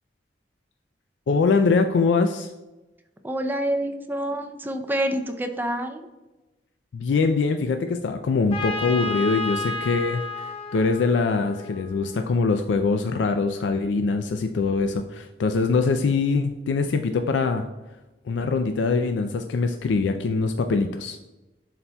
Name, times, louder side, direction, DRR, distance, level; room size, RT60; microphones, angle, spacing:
voice 1, 1.3-2.5 6.9-10.4 10.7-17.7 18.3-21.2, left 4 dB, 85° left, 6 dB, 0.4 m, -23 dB
voice 2, 3.2-6.1, right 1 dB, 10° right, 6 dB, 0.4 m, -27 dB
Trumpet, 8.5-12.2, left 3 dB, 35° left, 1.0 m, -32 dB
11.5 x 4.2 x 2.2 m, 1.1 s
head